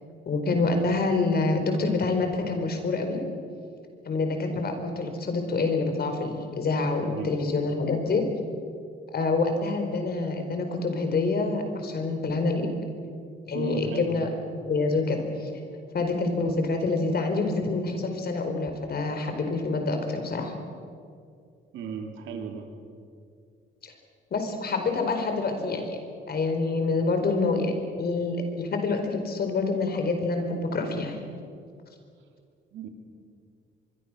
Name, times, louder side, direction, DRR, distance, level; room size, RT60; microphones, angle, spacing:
voice 1, 0.3-3.2 4.0-8.2 9.1-12.8 13.5-14.3 14.7-15.5 15.9-20.5 23.8-23.9 24.3-26.0 26.3-31.3, left 3 dB, 50° left, 5 dB, 4.5 m, -27 dB
voice 2, 7.0-7.3 13.5-14.3 21.7-22.7 32.7-32.9, right 6 dB, 80° right, 4 dB, 2.9 m, -35 dB
24.5 x 23.0 x 6.3 m, 2.3 s
cardioid pair, 90°, 20 cm